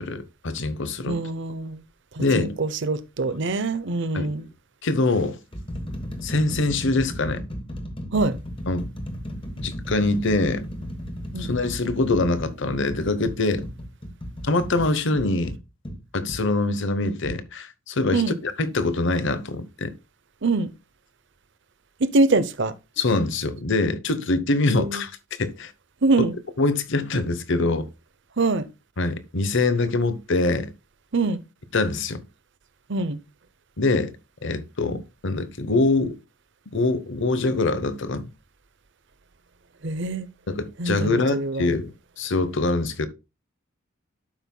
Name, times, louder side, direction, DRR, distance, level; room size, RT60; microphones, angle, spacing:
voice 1, 0.0-1.2 2.2-2.5 4.1-4.3 4.8-5.4 6.2-7.4 8.7-8.9 9.6-10.6 11.4-13.6 14.4-15.6 16.1-19.9 23.0-25.1 25.4-25.7 26.6-27.9 29.0-30.7 31.7-32.2 33.8-34.1 34.4-36.1 36.7-38.3 40.5-41.9 42.2-43.1, left 2 dB, 60° left, 1.0 m, -24 dB
voice 2, 1.1-1.8 2.1-4.4 8.1-8.4 11.3-11.5 18.1-18.4 20.4-20.7 22.0-22.7 24.7-25.0 26.0-26.4 28.4-28.7 31.1-31.4 32.9-33.2 39.8-40.3 40.8-41.7, right 3 dB, 60° right, 0.7 m, -24 dB
sound 1, 3.2-3.5 4.4-4.5 5.2-16.5 17.2-17.4, equal, 25° left, 1.3 m, -35 dB
12.0 x 5.5 x 2.2 m
head